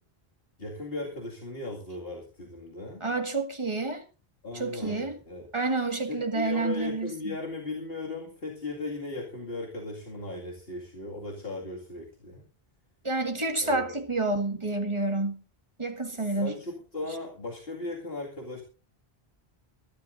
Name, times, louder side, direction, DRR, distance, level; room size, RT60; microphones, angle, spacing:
voice 1, 0.6-3.1 4.4-5.5 6.0-12.4 13.6-14.0 16.1-18.6, left 2 dB, 65° left, 2.4 m, -37 dB
voice 2, 3.0-4.0 4.5-5.2 5.5-7.3 13.0-15.4 15.8-16.5, right 3 dB, 30° right, 1.8 m, -29 dB
23.0 x 12.0 x 2.6 m
omnidirectional pair, 1.1 m